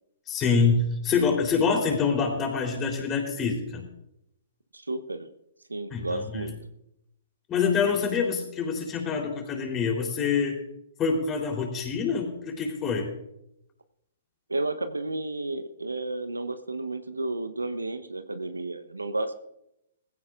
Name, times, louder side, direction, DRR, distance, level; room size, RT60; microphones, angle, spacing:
voice 1, 0.3-3.9 5.9-6.5 7.5-10.6 11.0-13.1, left 5 dB, 25° left, 2 dB, 3.6 m, -26 dB
voice 2, 4.7-5.3 5.7-6.5 14.5-19.3, right 2 dB, 90° right, 10 dB, 0.9 m, -32 dB
19.5 x 15.5 x 2.5 m, 0.82 s
figure-of-eight pair, 120°, 0 cm